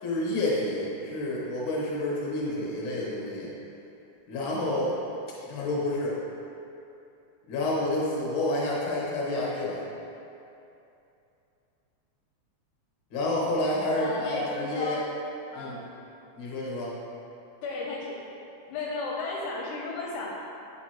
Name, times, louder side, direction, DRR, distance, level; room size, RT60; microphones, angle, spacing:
voice 1, 0.0-3.5 4.3-5.0 5.4-6.2 7.5-9.8 13.1-15.0 15.5-15.7 16.4-16.9, left 1 dB, 55° left, -5 dB, 1.5 m, -29 dB
voice 2, 13.9-15.0 15.5-15.8 17.6-18.2 18.7-20.4, left 3 dB, 80° left, -3 dB, 2.0 m, -34 dB
8.1 x 4.8 x 2.9 m, 2.7 s
omnidirectional pair, 3.7 m